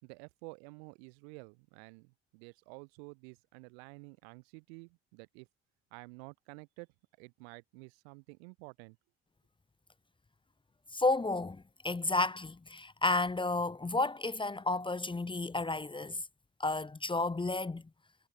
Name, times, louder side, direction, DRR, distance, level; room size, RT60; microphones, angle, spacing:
voice 1, 0.0-5.5 5.9-6.9 7.2-9.0, right 34 dB, 75° right, 4.8 m, -51 dB
voice 2, 10.9-16.2 16.6-17.8, left 2 dB, 15° left, 1.1 m, -32 dB
hypercardioid pair, 55°, 32 cm